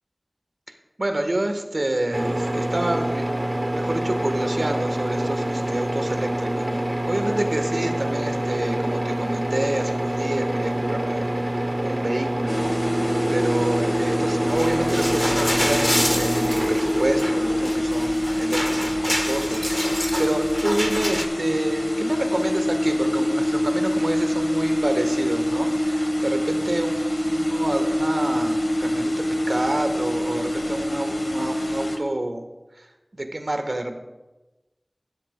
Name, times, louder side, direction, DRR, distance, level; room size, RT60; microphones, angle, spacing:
voice 1, 1.0-3.3 3.7-12.7 13.3-32.5 32.8-32.9 33.1-34.0, right 1 dB, 75° right, 5 dB, 1.3 m, -28 dB
sound 1, 2.1-17.8, right 1 dB, 45° right, 0.8 m, -26 dB
sound 2, 12.5-32.0, equal, 80° left, 1.5 m, -25 dB
sound 3, 14.5-21.3, equal, 20° left, 1.2 m, -28 dB
15.5 x 12.0 x 2.2 m, 1.1 s
wide cardioid pair, 40°, 0 cm